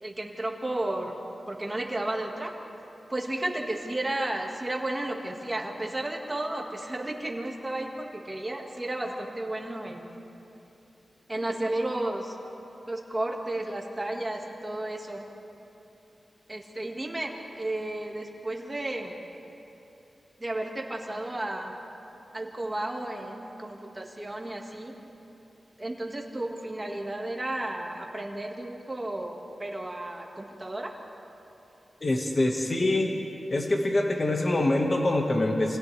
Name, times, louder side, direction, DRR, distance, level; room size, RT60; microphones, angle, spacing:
voice 1, 0.0-1.1 1.5-2.5 3.1-10.0 11.3-12.4 12.9-15.2 16.5-19.1 20.4-21.8 22.3-24.9 25.8-30.9, right 1 dB, 20° right, 0 dB, 1.9 m, -33 dB
voice 2, 32.0-33.1 33.5-35.8, left 2 dB, 35° left, 1 dB, 1.6 m, -25 dB
28.5 x 28.5 x 3.4 m, 3.0 s
wide cardioid pair, 150°, 0 cm